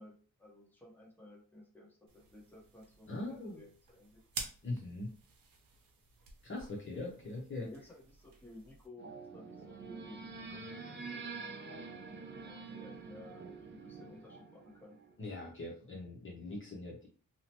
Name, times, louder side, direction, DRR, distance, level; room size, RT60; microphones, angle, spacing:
voice 1, 0.0-4.2 7.6-12.2 12.4-15.0, left 1 dB, 5° left, -3 dB, 0.9 m, -55 dB
sound 1, 2.1-8.9, right 4 dB, 90° right, 0.7 m, -50 dB
voice 2, 3.1-3.6 4.6-5.1 6.4-7.7 15.2-17.1, left 2 dB, 35° left, -2 dB, 0.7 m, -41 dB
sound 2, 9.0-15.1, right 4 dB, 35° right, 0.5 m, -47 dB
2.8 x 2.1 x 2.8 m, 0.39 s
wide cardioid pair, 100°, 33 cm